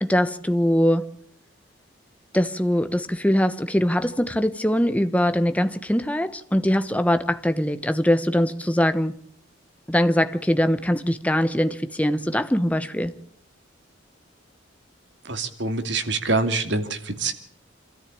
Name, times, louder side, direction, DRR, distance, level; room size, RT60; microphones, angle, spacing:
voice 1, 0.0-1.1 2.3-9.1 9.9-13.1, equal, 5° left, 1.1 m, -22 dB
voice 2, 15.3-17.3, right 3 dB, 60° right, 2.6 m, -25 dB
27.0 x 13.5 x 8.7 m
head